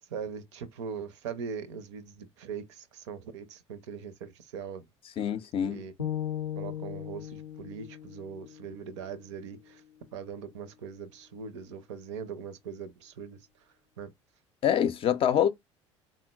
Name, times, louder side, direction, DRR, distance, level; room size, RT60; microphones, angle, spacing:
voice 1, 0.1-4.9 5.6-5.9 6.6-9.8 10.1-13.4 14.0-14.1, right 6 dB, 70° right, 0.5 m, -40 dB
voice 2, 5.2-5.8 14.6-15.5, left 9 dB, 35° left, 0.4 m, -25 dB
sound 1, 6.0-10.1, left 10 dB, 90° left, 0.5 m, -38 dB
3.6 x 2.1 x 2.2 m
figure-of-eight pair, 65°, 16 cm